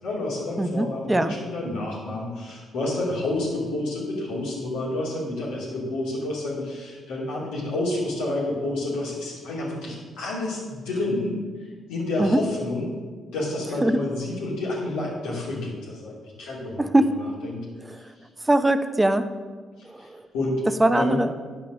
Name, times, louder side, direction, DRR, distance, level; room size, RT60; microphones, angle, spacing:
voice 1, 0.0-11.4 11.9-12.9 13.3-17.7 20.0-20.7 21.0-21.2, left 2 dB, 90° left, -5 dB, 2.9 m, -29 dB
voice 2, 0.6-1.3 12.2-12.4 13.8-14.0 16.8-17.2 18.5-19.3 19.9-20.2 20.8-21.3, right 1 dB, 15° right, 10 dB, 0.6 m, -21 dB
9.0 x 6.0 x 6.3 m, 1.5 s
supercardioid pair, 55°, 0 cm